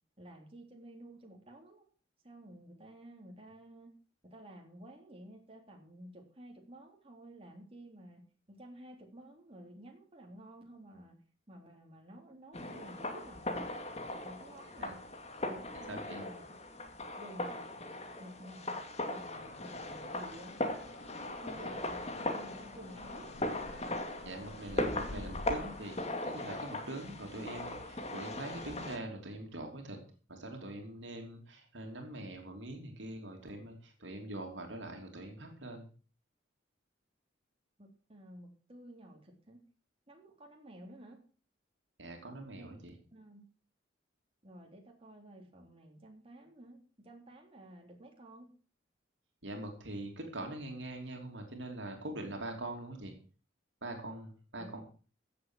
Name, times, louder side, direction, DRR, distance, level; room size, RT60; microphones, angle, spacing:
voice 1, 0.2-1.8 2.2-3.9 4.2-8.2 8.5-11.2 11.5-13.7 14.2-15.0 15.5-16.4 17.2-17.6 18.2-20.6 21.2-23.3 37.8-39.6 40.1-41.2 42.6-42.7 43.1-43.4 44.4-48.5 54.6-54.8, right 1 dB, 30° right, 1 dB, 3.5 m, -52 dB
sound 1, 12.5-29.0, left 1 dB, 35° left, 2.4 m, -39 dB
voice 2, 15.9-16.2 24.2-26.0 26.2-30.0 30.3-35.9 42.0-42.9 49.4-53.1 53.8-54.8, right 1 dB, 75° right, 3 dB, 3.1 m, -43 dB
sound 2, 19.3-26.6, left 2 dB, 90° left, 1.2 m, -50 dB
15.5 x 7.8 x 6.4 m, 0.38 s
head